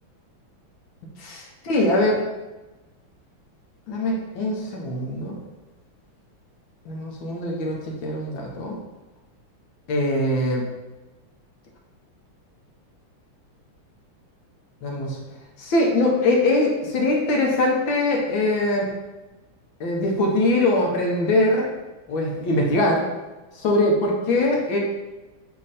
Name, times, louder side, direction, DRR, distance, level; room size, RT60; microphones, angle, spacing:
voice 1, 1.2-2.2 3.9-5.4 6.9-8.8 9.9-10.6 14.8-15.2 15.6-18.9 19.8-21.7 22.1-23.1 23.6-24.8, left 1 dB, 65° left, -1 dB, 1.9 m, -22 dB
8.6 x 3.1 x 4.2 m, 1.1 s
omnidirectional pair, 2.4 m